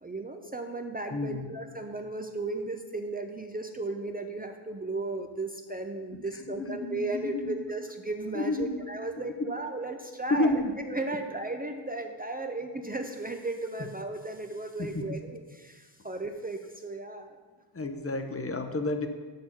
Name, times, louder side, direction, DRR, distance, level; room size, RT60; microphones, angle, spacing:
voice 1, 0.0-10.6 10.9-17.4, right 2 dB, 20° right, 5 dB, 0.6 m, -35 dB
voice 2, 1.1-1.5 6.4-7.6 8.3-8.8 9.4-9.5 10.3-10.8 14.8-15.0 17.7-19.1, left 2 dB, 30° left, 6 dB, 0.8 m, -30 dB
7.2 x 6.6 x 5.8 m, 1.4 s
wide cardioid pair, 90°, 44 cm